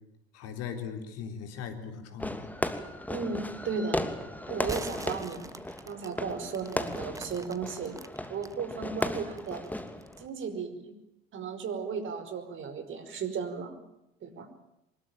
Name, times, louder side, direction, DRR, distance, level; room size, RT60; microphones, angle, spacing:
voice 1, 0.3-2.5, left 7 dB, 55° left, 6 dB, 3.9 m, -39 dB
Fireworks, 2.2-10.3, left 1 dB, 5° left, 2.8 m, -36 dB
voice 2, 3.1-4.0 4.5-5.4 5.9-8.0 8.3-9.6 10.2-10.9 11.3-13.7 14.2-14.5, right 5 dB, 40° right, 8 dB, 5.2 m, -35 dB
sound 1, 4.6-8.5 9.0-10.3, right 2 dB, 10° right, 1.8 m, -45 dB
24.5 x 21.0 x 8.9 m, 0.87 s
hypercardioid pair, 70°, 30 cm